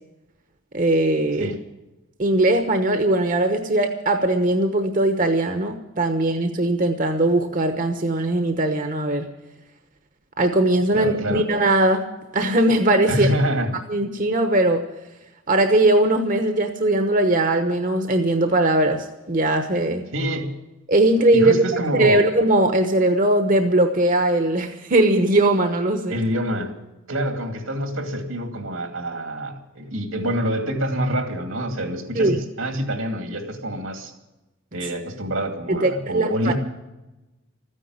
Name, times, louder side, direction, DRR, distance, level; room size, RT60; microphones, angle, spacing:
voice 1, 0.7-1.5 2.2-9.2 10.4-12.0 12.3-13.3 13.9-14.8 15.5-20.0 20.9-21.5 21.9-26.2 32.1-32.4 35.7-36.5, right 1 dB, 40° right, 6 dB, 1.0 m, -20 dB
voice 2, 10.9-11.5 13.1-13.8 20.1-20.5 21.3-22.2 26.1-26.7 27.1-34.1 34.7-36.5, equal, 80° right, 5 dB, 2.5 m, -26 dB
14.0 x 10.0 x 9.6 m, 1.0 s
head